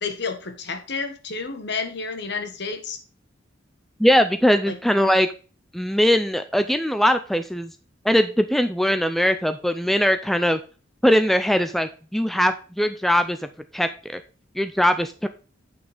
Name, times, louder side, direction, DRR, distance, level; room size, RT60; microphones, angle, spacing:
voice 1, 0.0-3.0 4.7-4.8, left 4 dB, 60° left, 1.3 m, -30 dB
voice 2, 4.0-5.3 5.7-7.7 8.0-10.6 11.0-13.4 13.7-14.2 14.6-15.3, equal, ahead, 0.4 m, -20 dB
8.7 x 6.0 x 3.4 m
head